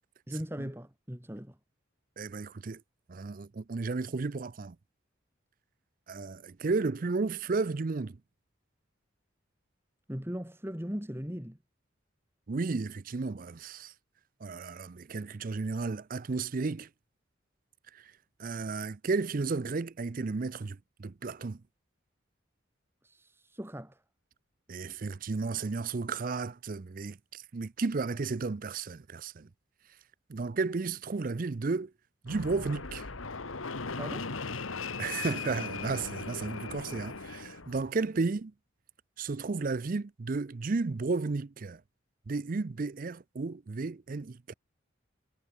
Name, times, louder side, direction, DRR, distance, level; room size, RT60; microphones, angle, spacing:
voice 1, 0.3-1.6 10.1-11.6 23.0-24.0 34.0-34.3, equal, 10° right, 2.2 m, -39 dB
voice 2, 2.2-2.8 3.1-4.8 6.1-8.2 12.5-13.9 14.4-16.9 17.9-18.1 18.4-21.6 24.7-29.5 30.3-31.9 32.2-33.1 35.0-38.5 39.2-41.8 42.3-44.5, right 4 dB, 45° right, 0.5 m, -33 dB
Fixed-wing aircraft airplane, 32.3-37.9, left 4 dB, 85° left, 1.7 m, -38 dB
head